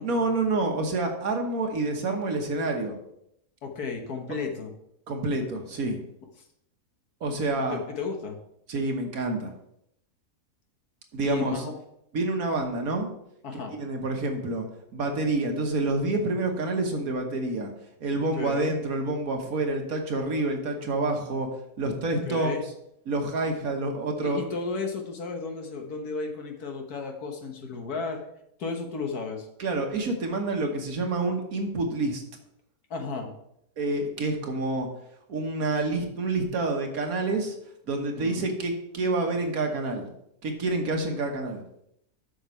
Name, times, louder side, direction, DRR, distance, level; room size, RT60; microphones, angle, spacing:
voice 1, 0.0-3.0 5.1-6.0 7.2-7.8 8.7-9.5 11.1-11.6 12.1-13.1 13.7-14.7 14.9-17.7 18.0-21.5 21.8-22.6 23.1-24.5 29.6-32.2 33.8-34.9 35.3-37.6 37.9-40.1 40.4-41.6, right 2 dB, 65° right, 3 dB, 1.7 m, -28 dB
voice 2, 3.6-4.7 7.7-8.4 11.2-11.7 13.4-13.7 18.3-18.8 22.3-22.6 24.2-28.2 28.6-29.5 32.9-33.3 38.2-38.5, left 4 dB, 75° left, 3 dB, 1.8 m, -33 dB
7.8 x 6.1 x 4.5 m, 0.76 s
omnidirectional pair, 1.7 m